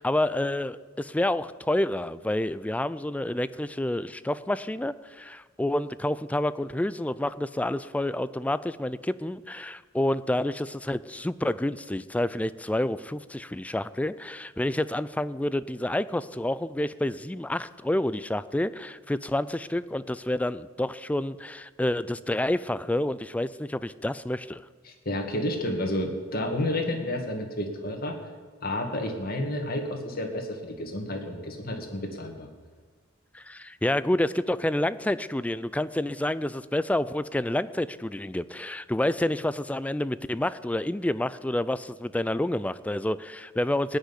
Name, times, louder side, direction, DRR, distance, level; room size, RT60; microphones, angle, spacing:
voice 1, 0.0-24.6 33.3-44.0, left 1 dB, 5° left, 15 dB, 0.4 m, -28 dB
voice 2, 24.9-28.2 28.6-32.5, left 1 dB, 50° left, 3 dB, 2.3 m, -30 dB
18.5 x 6.6 x 9.9 m, 1.5 s
head